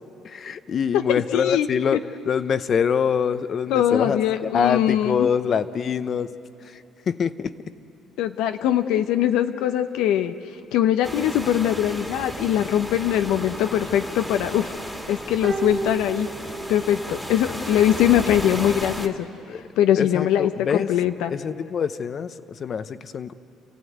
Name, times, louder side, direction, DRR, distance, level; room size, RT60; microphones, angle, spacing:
voice 1, 0.2-6.3 6.7-6.8 7.1-7.5 19.5-19.6 20.0-20.9 21.3-22.3 22.6-23.3, left 7 dB, 40° left, 13 dB, 0.8 m, -25 dB
voice 2, 0.9-2.0 3.7-5.3 8.2-10.3 10.7-14.7 15.1-16.3 16.7-19.3 19.8-21.3, left 11 dB, 85° left, 9 dB, 0.8 m, -22 dB
sound 1, 11.0-19.1, equal, 5° left, 1.8 m, -34 dB
sound 2, 15.4-17.1 17.4-17.5, right 3 dB, 30° right, 2.0 m, -32 dB
29.0 x 15.5 x 9.4 m, 2.8 s
cardioid pair, 125°, 0 cm